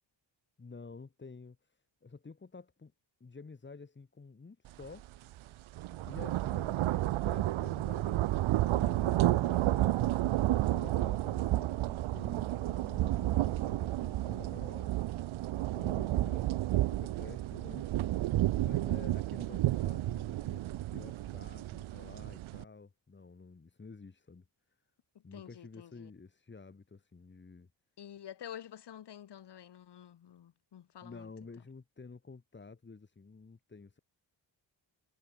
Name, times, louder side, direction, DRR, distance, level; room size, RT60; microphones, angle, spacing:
voice 1, 0.6-2.9 3.2-5.1 6.1-15.0 15.7-18.3 18.6-24.5 25.2-27.7 31.0-34.0, left 4 dB, 25° left, 3.4 m, -51 dB
sound 1, 4.8-5.0 5.4-22.6, right 15 dB, 85° right, 0.7 m, -31 dB
voice 2, 25.3-26.1 28.0-31.3, left 10 dB, 60° left, 1.9 m, -49 dB
wide cardioid pair, 170°, 47 cm